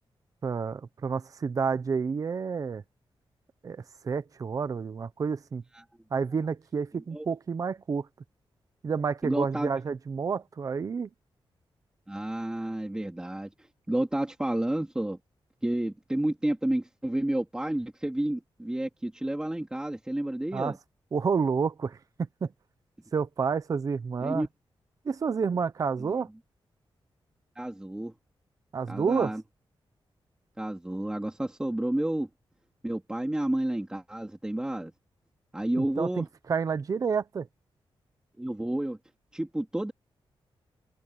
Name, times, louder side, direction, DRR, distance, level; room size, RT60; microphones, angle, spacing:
voice 1, 0.4-2.8 3.6-5.6 6.1-8.1 8.8-11.1 20.5-20.7 21.1-22.0 22.4-22.5 23.1-24.5 25.0-26.3 28.7-29.3 35.8-37.5, right 5 dB, 40° right, 0.8 m, -29 dB
voice 2, 6.9-7.3 9.2-9.7 12.1-13.5 13.9-15.2 15.6-20.8 24.2-24.5 26.0-26.1 27.6-28.1 28.9-29.4 30.6-32.3 32.8-34.9 35.5-36.3 38.4-39.0 39.3-39.9, right 1 dB, 10° right, 2.6 m, -30 dB
open air
wide cardioid pair, 180°, 9 cm